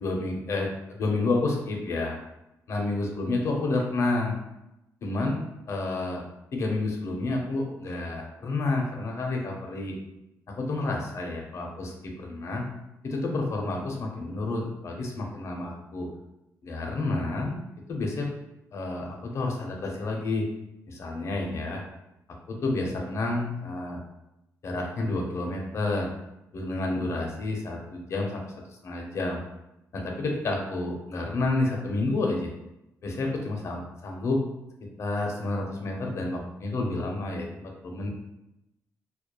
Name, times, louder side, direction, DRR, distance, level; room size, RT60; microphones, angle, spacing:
voice 1, 0.0-2.2 2.7-4.4 5.0-5.4 5.7-6.2 6.5-9.9 10.5-12.7 13.0-16.1 16.6-17.6 17.9-18.3 18.7-20.5 20.9-21.8 22.5-24.0 24.6-26.1 26.5-29.4 29.9-32.5 33.0-34.4 34.8-38.1, left 2 dB, 50° left, 1 dB, 0.5 m, -30 dB
2.2 x 2.1 x 2.9 m, 0.89 s
cardioid pair, 125°, 6 cm